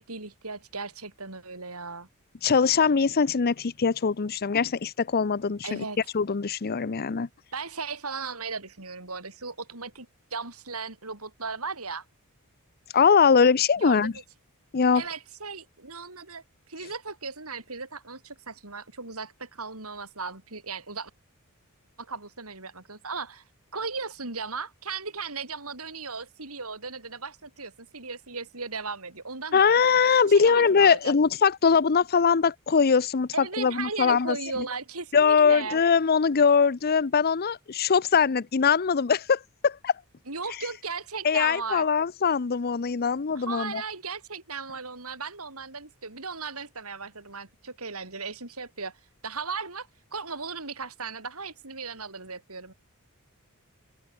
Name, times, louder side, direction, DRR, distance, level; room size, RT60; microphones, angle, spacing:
voice 1, 0.0-2.1 5.6-6.0 7.5-12.0 13.8-14.1 14.9-16.4 16.7-21.1 22.0-23.4 23.7-29.8 30.3-31.1 33.3-35.8 40.3-41.9 43.3-48.9 49.2-52.7, right 4 dB, 75° right, 6.4 m, -36 dB
voice 2, 2.4-5.8 6.1-7.3 12.9-14.1 14.7-15.0 29.5-34.4 35.1-39.9 41.2-43.8, left 6 dB, 45° left, 0.6 m, -22 dB
open air
head